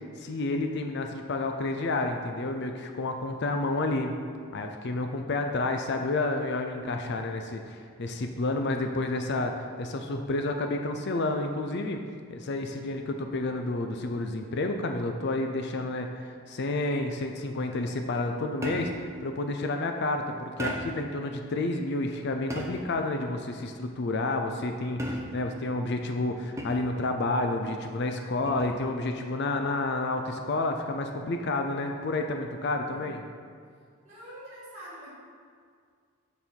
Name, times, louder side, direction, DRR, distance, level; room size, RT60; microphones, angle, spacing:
voice 1, 0.2-4.1 4.5-9.5 9.8-12.0 12.3-33.2, left 2 dB, 50° left, 5 dB, 0.4 m, -30 dB
sound 1, 18.6-19.1 20.6-21.1 22.5-23.0 25.0-25.6 26.6-27.0 28.5-28.8, equal, 15° right, 0.6 m, -35 dB
voice 2, 32.9-33.3 34.0-35.1, equal, 30° right, -10 dB, 1.7 m, -47 dB
6.5 x 5.4 x 4.4 m, 2.1 s
head